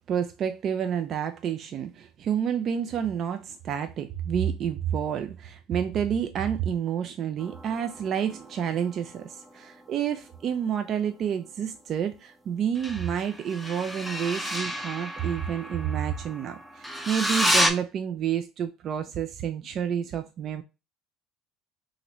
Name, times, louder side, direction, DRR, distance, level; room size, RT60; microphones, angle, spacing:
voice 1, 0.1-20.6, right 8 dB, 50° right, 0.3 m, -29 dB
sound 1, 7.4-10.4 12.7-17.7, equal, ahead, 0.6 m, -31 dB
2.9 x 2.5 x 3.0 m
hypercardioid pair, 70°, 0 cm